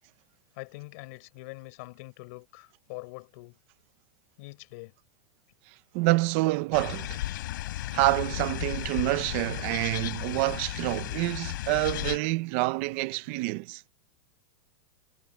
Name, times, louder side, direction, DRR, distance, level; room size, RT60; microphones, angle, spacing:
voice 1, 0.5-3.6 4.4-4.9, left 25 dB, 40° left, 5.3 m, -44 dB
voice 2, 5.7-7.2 7.9-13.8, right 21 dB, 35° right, 0.7 m, -27 dB
sound 1, 6.7-12.2, left 15 dB, 60° left, 4.4 m, -34 dB
supercardioid pair, 180°, 12 cm